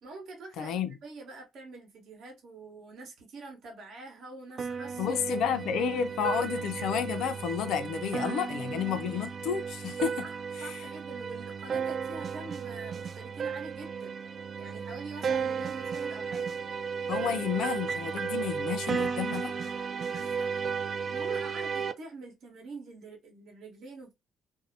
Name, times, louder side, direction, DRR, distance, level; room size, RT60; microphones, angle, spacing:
voice 1, 0.0-5.2 7.8-7.9 8.2-8.4 10.2-14.1 14.6-16.5 17.2-17.5 20.0-20.5 21.1-24.1, right 3 dB, 70° right, 1.1 m, -45 dB
voice 2, 0.6-0.9 5.0-10.3 10.6-10.7 17.1-19.5, left 8 dB, 85° left, 0.4 m, -31 dB
sound 1, 4.6-21.9, right 6 dB, 50° right, 0.3 m, -34 dB
2.6 x 2.0 x 2.6 m
cardioid pair, 90°, 0 cm